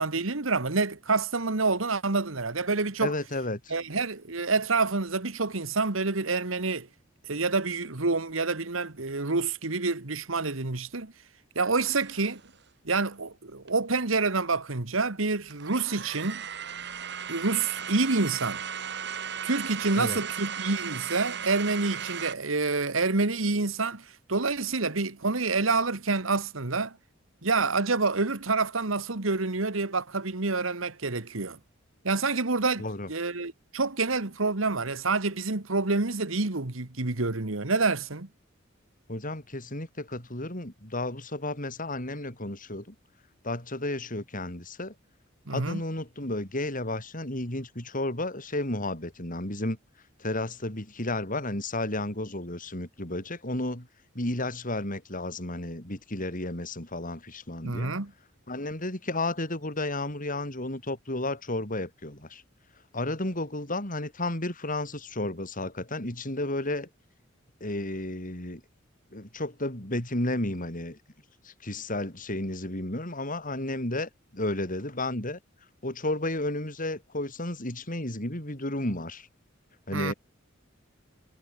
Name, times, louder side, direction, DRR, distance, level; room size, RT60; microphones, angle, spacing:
voice 1, 0.0-3.1 3.7-6.9 7.3-11.1 11.5-12.4 12.8-16.4 17.3-18.6 19.4-27.0 27.4-31.6 32.0-32.8 33.1-38.3 45.5-45.8 57.6-58.1 79.9-80.1, right 3 dB, 90° right, 1.8 m, -27 dB
voice 2, 3.0-3.7 19.9-20.2 32.8-33.1 39.1-42.9 43.4-44.9 45.5-49.8 50.2-53.9 54.1-57.9 58.5-62.4 62.9-66.9 67.6-68.6 69.1-71.0 71.4-75.4 75.8-79.3 79.9-80.1, left 1 dB, 45° left, 7.0 m, -32 dB
sound 1, 11.8-12.5 13.7-13.8 15.5-22.3, right 8 dB, 60° right, 5.1 m, -36 dB
head